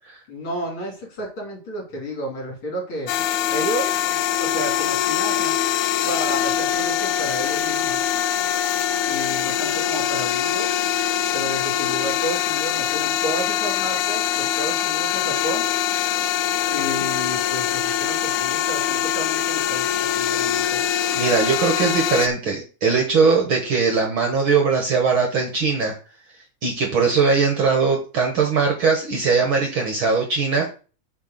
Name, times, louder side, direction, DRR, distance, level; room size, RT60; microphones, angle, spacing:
voice 1, 0.3-3.1 3.5-4.0 4.4-5.6 6.0-8.0 9.1-10.7 11.3-15.7 16.7-19.9 20.1-20.9, equal, 45° left, 0 dB, 3.4 m, -31 dB
sound 1, 3.1-22.3, left 10 dB, 85° left, 2.0 m, -23 dB
voice 2, 21.1-26.0 26.6-30.7, right 5 dB, 55° right, 2 dB, 1.7 m, -20 dB
6.7 x 4.6 x 6.6 m, 0.36 s
omnidirectional pair, 3.3 m